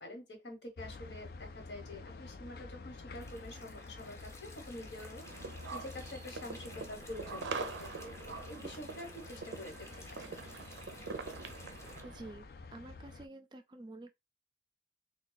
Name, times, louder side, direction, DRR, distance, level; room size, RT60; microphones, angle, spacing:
voice 1, 0.0-5.2 5.7-9.9, left 1 dB, 75° left, 1.3 m, -47 dB
sound 1, 0.8-13.3, left 3 dB, 55° left, 0.4 m, -50 dB
sound 2, 3.1-12.0, left 1 dB, 15° left, 0.7 m, -55 dB
sound 3, 5.2-12.3, right 4 dB, 85° right, 0.4 m, -44 dB
voice 2, 12.0-12.5 12.7-14.2, right 2 dB, 25° right, 0.3 m, -49 dB
3.5 x 2.3 x 3.9 m
head